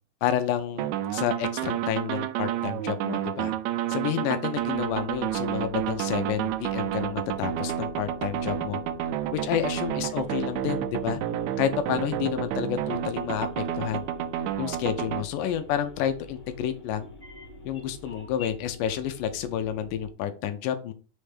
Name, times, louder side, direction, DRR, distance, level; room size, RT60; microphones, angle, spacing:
voice 1, 0.2-3.5 3.9-8.8 9.3-11.2 11.6-13.5 13.8-14.0 14.6-17.1 17.6-20.9, left 10 dB, 90° left, 8 dB, 2.2 m, -29 dB
sound 1, 0.8-15.2, right 11 dB, 80° right, 1.7 m, -30 dB
sound 2, 4.4-20.1, equal, 65° left, 2.7 m, -47 dB
sound 3, 9.5-18.5, left 5 dB, 5° left, 1.8 m, -54 dB
6.2 x 3.3 x 5.0 m, 0.37 s
omnidirectional pair, 3.6 m